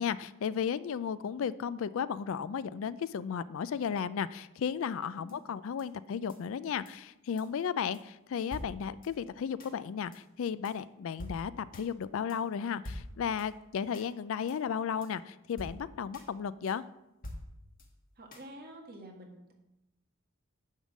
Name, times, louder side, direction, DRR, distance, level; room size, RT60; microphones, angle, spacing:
voice 1, 0.0-16.8, left 7 dB, 65° left, 17 dB, 0.3 m, -34 dB
voice 2, 5.1-5.6 18.2-19.5, right 1 dB, 45° right, 1 dB, 1.7 m, -49 dB
sound 1, 5.3-5.4 5.8-5.9 6.3-6.4 6.9-7.0 7.4-7.5 7.9-8.0 8.5-9.1 9.6-9.7 10.1-10.2 10.6-10.7 11.2-11.9 12.3-12.4 12.8-13.5 13.9-14.1 14.5-14.6 15.0-15.1 15.6-16.3 16.7-16.8 17.2-17.9 18.3-18.5, left 1 dB, 40° left, 1.4 m, -45 dB
10.0 x 3.7 x 7.2 m, 0.93 s
head